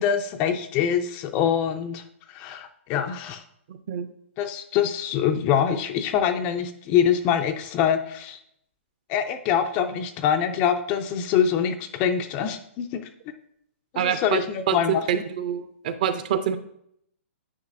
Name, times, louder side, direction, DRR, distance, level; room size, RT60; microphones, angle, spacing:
voice 1, 0.0-2.0 2.3-3.4 4.4-8.4 9.1-13.1 13.9-15.2, left 8 dB, 20° left, 7 dB, 0.3 m, -24 dB
voice 2, 14.0-16.6, right 8 dB, 35° right, 11 dB, 0.5 m, -26 dB
9.5 x 5.2 x 2.6 m, 0.71 s
hypercardioid pair, 165°, 7 cm